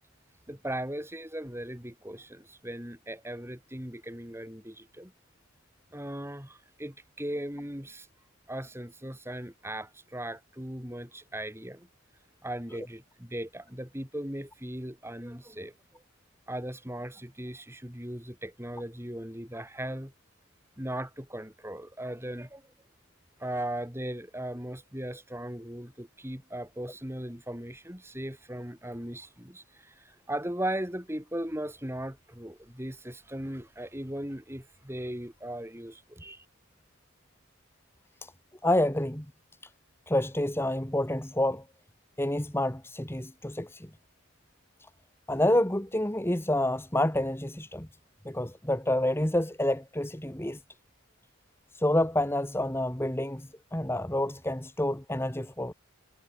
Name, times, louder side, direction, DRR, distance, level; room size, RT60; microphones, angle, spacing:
voice 1, 0.5-5.1 5.9-8.1 8.5-11.9 12.4-16.0 16.5-20.1 20.8-22.7 23.4-36.4, right 1 dB, 10° right, 4.5 m, -38 dB
voice 2, 38.6-39.2 40.1-41.6 42.2-43.9 45.3-47.9 48.2-50.6 51.7-55.7, left 1 dB, 10° left, 1.5 m, -28 dB
head